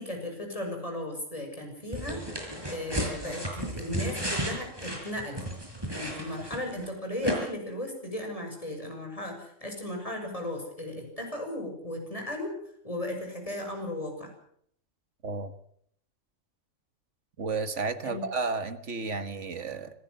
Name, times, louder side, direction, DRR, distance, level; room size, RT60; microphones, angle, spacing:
voice 1, 0.0-2.2 2.7-5.4 5.9-12.5 12.8-14.3 18.0-18.2, left 1 dB, 25° left, 2 dB, 6.7 m, -36 dB
sound 1, 1.9-6.9 7.2-7.4, right 1 dB, 20° right, 6.2 m, -33 dB
voice 2, 17.4-19.9, right 4 dB, 70° right, 11 dB, 1.9 m, -32 dB
26.0 x 15.5 x 7.9 m, 0.66 s
omnidirectional pair, 1.3 m